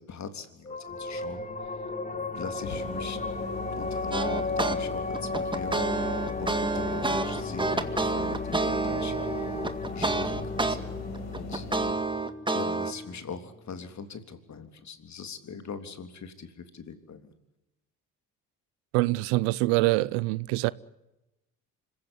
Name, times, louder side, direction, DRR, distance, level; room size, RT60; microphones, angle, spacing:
voice 1, 0.0-1.5 2.1-3.2 3.8-9.5 9.9-12.2 12.5-17.3, left 5 dB, 50° left, 3.4 m, -42 dB
sound 1, 0.6-13.5, left 3 dB, 20° left, 2.5 m, -35 dB
sound 2, 2.6-11.9, left 4 dB, 90° left, 6.6 m, -39 dB
sound 3, 4.1-4.8 5.1-10.8 11.1-12.9, right 3 dB, 15° right, 2.0 m, -28 dB
voice 2, 18.9-20.7, right 21 dB, 85° right, 0.7 m, -24 dB
25.5 x 16.0 x 9.7 m
supercardioid pair, 65°, 37 cm